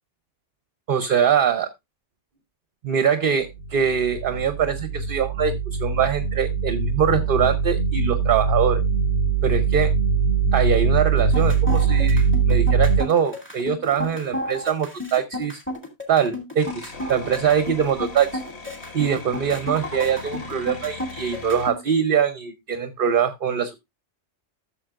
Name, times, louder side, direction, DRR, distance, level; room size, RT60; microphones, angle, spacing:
voice 1, 0.9-1.7 2.8-8.8 9.4-9.9 10.5-15.6 16.1-18.4 18.9-23.7, right 7 dB, 50° right, 10 dB, 0.8 m, -23 dB
sound 1, 3.6-13.0, right 5 dB, 75° left, 2.8 m, -22 dB
sound 2, 11.2-21.8, left 1 dB, 10° left, 2.3 m, -32 dB
sound 3, 16.6-21.7, left 4 dB, 60° left, 1.5 m, -39 dB
13.5 x 7.1 x 2.4 m, 0.19 s
omnidirectional pair, 1.3 m